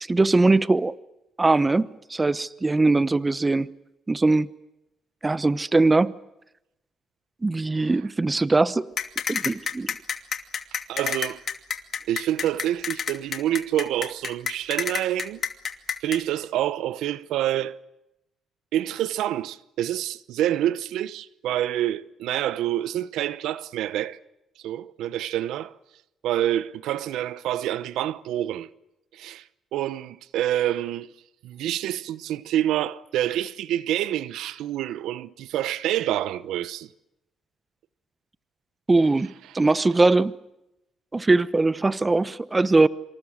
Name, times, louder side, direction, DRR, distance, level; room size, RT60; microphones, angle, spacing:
voice 1, 0.1-1.0 1.4-3.7 4.1-4.5 5.2-6.1 7.4-8.9 9.3-9.9 38.9-40.4 41.1-42.9, right 3 dB, 20° right, 1.0 m, -21 dB
sound 1, 9.0-16.2, left 7 dB, 50° left, 2.5 m, -28 dB
voice 2, 10.9-11.4 12.1-15.4 16.0-17.8 18.7-24.2 24.6-25.7 26.2-28.7 29.1-29.4 29.7-31.1 31.4-36.9, right 12 dB, 85° right, 0.9 m, -27 dB
26.5 x 26.5 x 6.5 m
cardioid pair, 90°, 0 cm